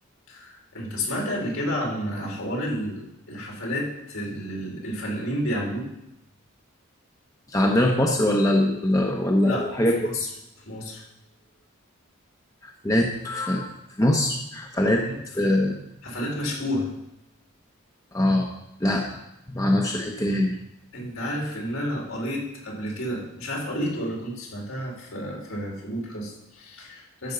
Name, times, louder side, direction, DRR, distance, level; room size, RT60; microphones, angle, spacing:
voice 1, 0.3-5.9 9.4-9.7 10.0-10.3 10.7-11.0 14.8-15.2 16.0-16.9 20.9-27.3, equal, 70° left, -2 dB, 3.6 m, -31 dB
voice 2, 7.5-9.9 12.8-15.0 15.4-15.7 18.1-18.5 18.8-19.0 19.5-20.5, left 1 dB, 15° left, 0 dB, 0.9 m, -22 dB
13.0 x 5.3 x 6.7 m, 0.85 s
head